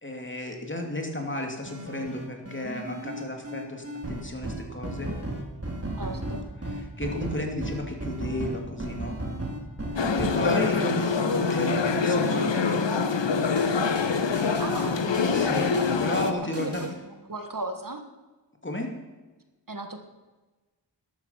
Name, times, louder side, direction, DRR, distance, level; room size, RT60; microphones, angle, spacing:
voice 1, 0.0-5.1 6.7-9.2 10.2-12.7 15.3-15.7 16.0-16.9 18.6-18.9, left 1 dB, 25° left, 2 dB, 2.7 m, -33 dB
sound 1, 1.7-16.9, right 1 dB, 35° right, 3.1 m, -35 dB
voice 2, 6.0-6.4 10.0-10.4 14.6-15.1 16.5-16.7 17.2-18.0 19.7-20.0, right 2 dB, 50° right, 6 dB, 1.7 m, -35 dB
sound 2, 10.0-16.3, left 5 dB, 85° left, 1.0 m, -25 dB
13.0 x 13.0 x 5.9 m, 1.2 s
wide cardioid pair, 50°, 43 cm